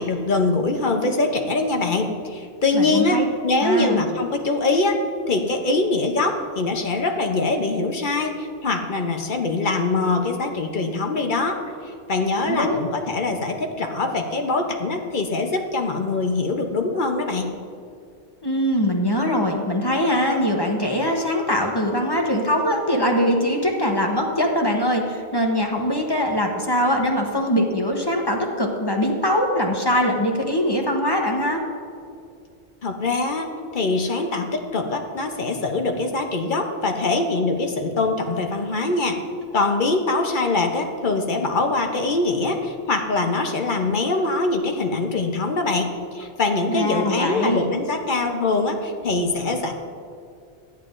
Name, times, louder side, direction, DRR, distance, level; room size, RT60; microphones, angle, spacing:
voice 1, 0.0-5.0 5.3-17.5 32.8-33.5 33.7-39.2 39.5-49.7, left 3 dB, 50° left, 4 dB, 0.9 m, -23 dB
voice 2, 2.7-3.2 3.6-4.0 12.4-12.8 18.4-31.6 46.7-47.7, equal, 25° left, 1 dB, 0.8 m, -22 dB
12.5 x 10.0 x 2.5 m, 2.3 s
omnidirectional pair, 1.2 m